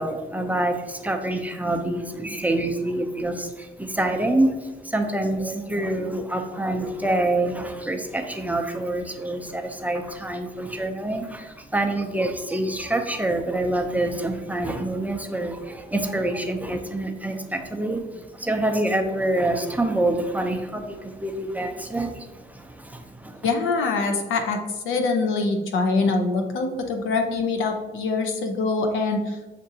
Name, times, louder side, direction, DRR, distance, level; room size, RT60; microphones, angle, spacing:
voice 1, 0.0-23.5, right 1 dB, 10° right, 3 dB, 0.5 m, -26 dB
voice 2, 23.4-24.6 24.8-29.4, left 3 dB, 85° left, 4 dB, 0.7 m, -24 dB
7.4 x 2.5 x 2.7 m, 1.2 s
cardioid pair, 90°, 20 cm